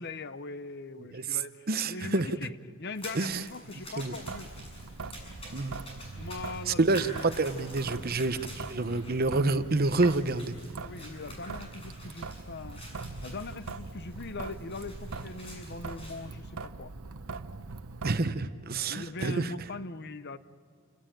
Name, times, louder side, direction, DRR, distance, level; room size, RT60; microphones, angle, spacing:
voice 1, 0.0-2.5 2.8-4.5 6.2-6.8 7.9-8.0 10.8-12.8 13.2-16.9 18.9-20.4, left 3 dB, 50° left, 13 dB, 0.8 m, -41 dB
voice 2, 1.7-2.3 3.1-3.5 4.0-4.2 5.5-5.8 6.7-10.6 18.0-19.5, right 3 dB, 45° right, 12 dB, 0.8 m, -28 dB
sound 1, 2.9-16.2, equal, 25° left, 7.5 m, -48 dB
Traffic noise roadway noise / Drip / Trickle dribble, 4.2-18.2, right 3 dB, 90° right, 0.9 m, -42 dB
29.0 x 18.0 x 9.2 m, 2.3 s
head